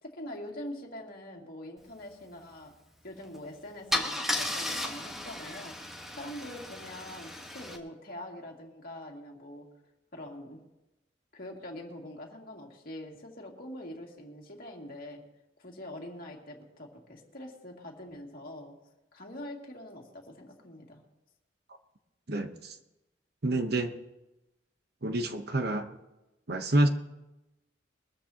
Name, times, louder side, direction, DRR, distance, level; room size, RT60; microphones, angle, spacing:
voice 1, 0.0-2.7 3.0-5.8 6.1-9.7 10.1-10.6 11.3-15.2 15.6-18.8 19.1-21.0, left 1 dB, 50° left, -1 dB, 2.4 m, -44 dB
Car / Engine starting / Idling, 3.2-3.4 3.9-7.8, left 1 dB, ahead, 1.3 m, -34 dB
voice 2, 22.3-22.8 23.4-23.9 25.0-25.9 26.5-26.9, right 1 dB, 55° right, 7 dB, 1.0 m, -28 dB
22.5 x 13.5 x 2.9 m, 0.97 s
head